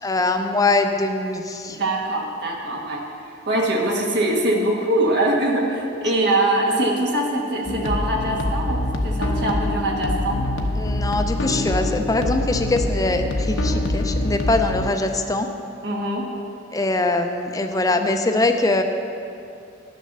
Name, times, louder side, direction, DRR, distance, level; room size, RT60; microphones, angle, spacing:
voice 1, 0.0-1.8 10.8-15.5 16.7-18.8, left 2 dB, 20° left, 5 dB, 0.6 m, -22 dB
voice 2, 1.7-10.4 15.8-16.3, right 1 dB, 60° right, -1 dB, 1.5 m, -23 dB
sound 1, 7.6-14.9, left 1 dB, 90° left, 1.0 m, -24 dB
10.5 x 6.5 x 6.7 m, 2.6 s
head